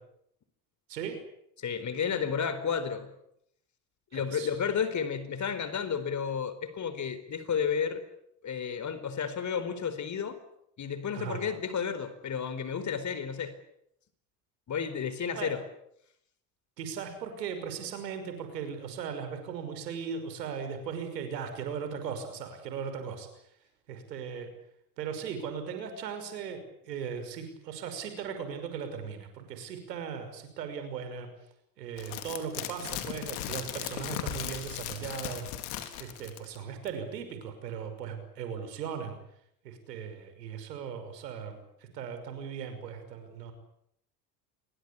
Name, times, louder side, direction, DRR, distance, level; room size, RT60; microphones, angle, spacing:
voice 1, 1.6-3.1 4.1-8.0 8.4-10.4 10.8-13.5 14.7-15.6, left 7 dB, 35° left, 12 dB, 4.4 m, -32 dB
voice 2, 4.1-4.5 11.1-11.4 15.4-15.5 16.8-23.3 23.9-24.5 25.0-31.3 31.8-35.5 36.0-39.2 39.6-41.6 41.9-43.5, right 7 dB, 75° right, 8 dB, 5.9 m, -38 dB
sound 1, 32.0-36.6 36.9-37.0, left 12 dB, 65° left, 3.9 m, -37 dB
28.0 x 23.0 x 8.5 m, 0.75 s
hypercardioid pair, 70°, 49 cm